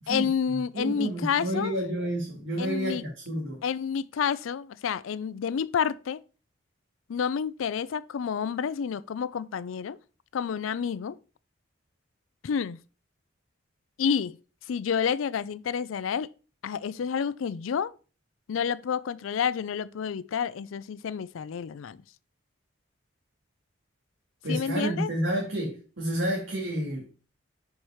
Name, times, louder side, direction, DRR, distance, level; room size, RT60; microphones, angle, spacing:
voice 1, 0.1-1.7 2.6-3.0 3.6-6.2 7.1-10.0 10.3-11.2 12.4-12.8 14.0-14.4 14.7-16.3 16.6-17.9 18.5-22.0 24.5-25.1, left 7 dB, 90° left, 0.4 m, -29 dB
voice 2, 0.7-3.6 24.4-27.1, right 1 dB, 80° right, 1.9 m, -30 dB
4.8 x 4.6 x 5.6 m
head